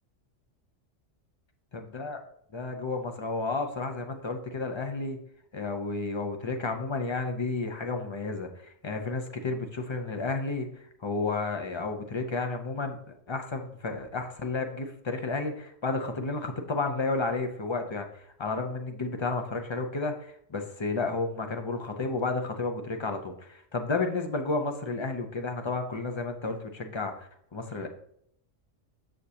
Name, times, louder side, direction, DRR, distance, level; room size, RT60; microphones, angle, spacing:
voice 1, 1.7-2.2 2.5-5.2 5.5-13.0 13.3-27.9, left 3 dB, 40° left, 5 dB, 0.4 m, -32 dB
6.5 x 6.3 x 2.8 m, 0.69 s
omnidirectional pair, 1.3 m